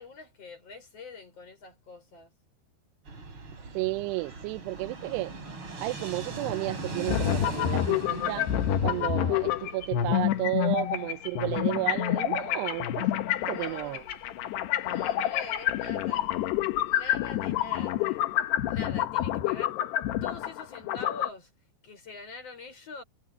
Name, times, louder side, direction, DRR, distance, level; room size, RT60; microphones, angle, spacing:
voice 1, 0.0-2.3 13.4-14.2 14.8-16.3 16.8-18.3 18.7-19.8 20.2-21.5 21.8-23.0, left 3 dB, 35° left, 7.2 m, -44 dB
Fixed-wing aircraft airplane, 3.1-18.8, right 3 dB, 30° right, 4.6 m, -42 dB
voice 2, 3.6-5.3 5.8-8.5 8.8-14.0, right 19 dB, 90° right, 2.8 m, -33 dB
sound 1, 7.1-21.3, left 12 dB, 80° left, 3.3 m, -28 dB
omnidirectional pair, 4.7 m